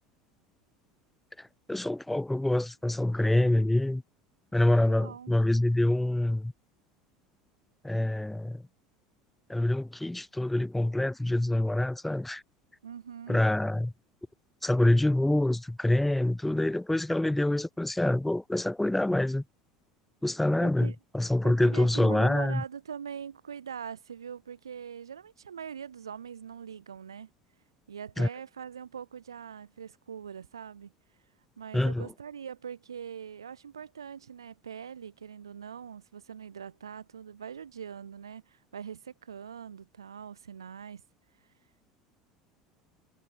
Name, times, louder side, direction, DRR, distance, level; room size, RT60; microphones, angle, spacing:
voice 1, 1.4-4.0 4.5-6.5 7.8-8.6 9.5-12.4 13.3-13.9 14.6-19.4 20.2-22.6 28.2-28.3 31.7-32.1, left 1 dB, 5° left, 0.4 m, -26 dB
voice 2, 3.3-3.7 4.6-5.3 12.8-13.4 20.6-21.0 21.4-27.3 27.9-30.9 31.6-41.0, right 7 dB, 90° right, 0.3 m, -42 dB
hypercardioid pair, 75°, 2 cm